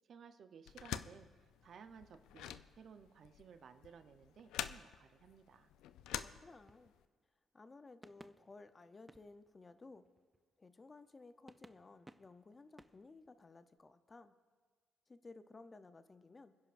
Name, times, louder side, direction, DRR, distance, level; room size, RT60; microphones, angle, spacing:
voice 1, 0.1-5.7, right 6 dB, 60° right, 9 dB, 0.7 m, -58 dB
sound 1, 0.7-7.0, left 11 dB, 90° left, 0.4 m, -46 dB
voice 2, 6.2-6.9 7.5-10.1 10.6-14.4 15.1-16.6, left 3 dB, 30° left, 11 dB, 0.6 m, -57 dB
sound 2, 6.3-7.8 8.0-10.7 11.0-11.1 11.5-13.8, right 1 dB, 10° right, 0.4 m, -63 dB
26.5 x 10.5 x 2.5 m, 1.5 s
cardioid pair, 90°, 0 cm